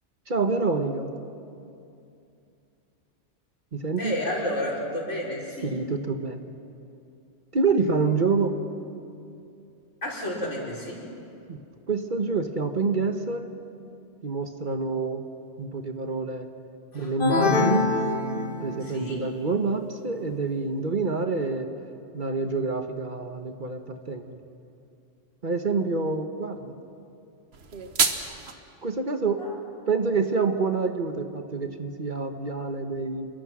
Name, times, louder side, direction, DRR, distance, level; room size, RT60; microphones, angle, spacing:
voice 1, 0.3-1.1 3.7-4.1 5.6-6.4 7.5-8.6 11.5-11.6 11.9-13.5 14.2-15.2 15.6-16.5 16.9-17.9 18.6-21.7 22.1-24.4 25.4-26.7 28.8-29.4 29.9-33.3, right 4 dB, 40° right, 6 dB, 1.2 m, -27 dB
voice 2, 4.0-5.7 10.0-11.1 16.9-17.1 18.8-19.2 29.4-29.5, left 1 dB, 75° left, -3 dB, 4.9 m, -31 dB
sound 1, 17.2-19.0, left 3 dB, 45° left, 1.8 m, -24 dB
sound 2, 27.5-28.5, right 5 dB, 60° right, 1.5 m, -26 dB
28.5 x 22.5 x 6.1 m, 2.6 s
omnidirectional pair, 1.3 m